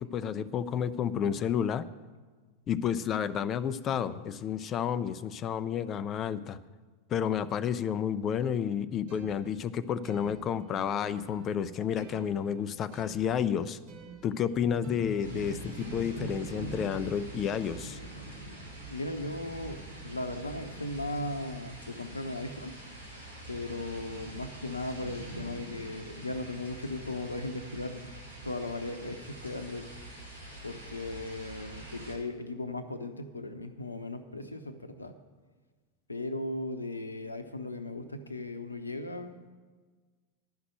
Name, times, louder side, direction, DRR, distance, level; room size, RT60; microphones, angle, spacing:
voice 1, 0.0-1.9 2.7-6.6 7.1-13.8 14.2-18.0, left 8 dB, 30° left, 15 dB, 0.5 m, -31 dB
sound 1, 9.1-16.8, right 6 dB, 45° right, 1.5 m, -52 dB
sound 2, 15.2-32.2, right 2 dB, 85° right, 2.3 m, -44 dB
voice 2, 18.9-22.7 23.5-29.9 30.6-35.1 36.1-39.4, left 2 dB, 80° left, 8 dB, 0.8 m, -37 dB
11.0 x 6.0 x 9.1 m, 1.4 s
figure-of-eight pair, 90°, 0 cm